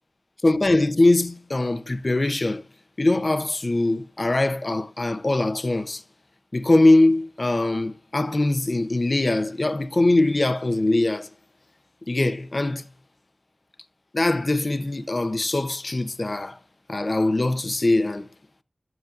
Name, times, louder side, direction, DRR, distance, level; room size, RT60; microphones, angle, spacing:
voice 1, 0.4-2.6 3.0-6.0 6.5-11.3 12.1-12.8 14.1-16.6 16.9-18.3, left 2 dB, 50° left, 0.9 m, -22 dB
13.5 x 7.8 x 2.6 m
cardioid pair, 45°, 0 cm